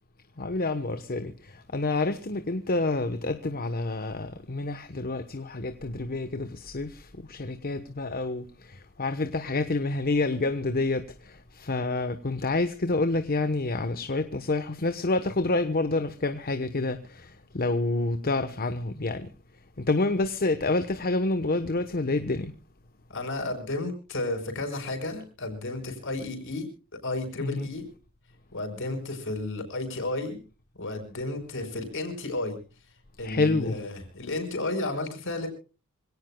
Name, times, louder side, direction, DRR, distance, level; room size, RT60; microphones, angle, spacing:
voice 1, 0.4-19.3 19.8-22.5 27.4-27.7 33.2-33.8, left 2 dB, 45° left, 1.1 m, -28 dB
voice 2, 23.1-26.7 26.9-27.9 28.5-30.4 30.8-32.6 33.2-35.5, left 2 dB, 60° left, 5.5 m, -32 dB
26.5 x 17.5 x 2.3 m
head